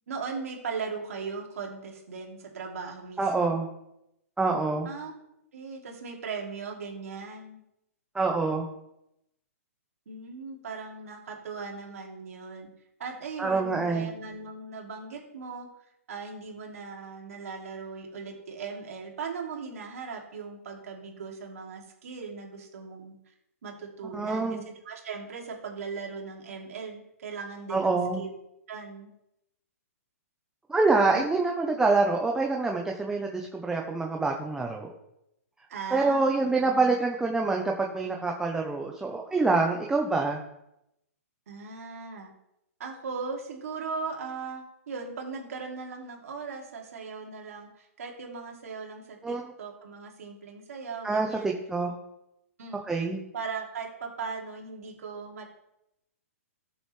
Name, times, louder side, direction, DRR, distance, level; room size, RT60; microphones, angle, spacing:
voice 1, 0.0-3.6 4.8-5.1 5.5-7.6 10.1-12.7 13.0-15.7 16.1-23.1 23.6-28.3 28.7-29.1 31.1-31.3 35.7-36.9 41.5-42.3 42.8-51.5 52.6-52.8 53.3-55.4, right 5 dB, 70° right, 1 dB, 2.7 m, -38 dB
voice 2, 3.2-3.7 4.4-4.9 8.1-8.7 13.4-14.1 24.1-24.6 27.7-28.2 30.7-34.9 35.9-40.4 49.2-49.4 51.0-51.9 52.9-53.2, right 3 dB, 5° right, 1 dB, 0.9 m, -26 dB
13.0 x 6.9 x 3.3 m, 0.84 s
hypercardioid pair, 140°, 8 cm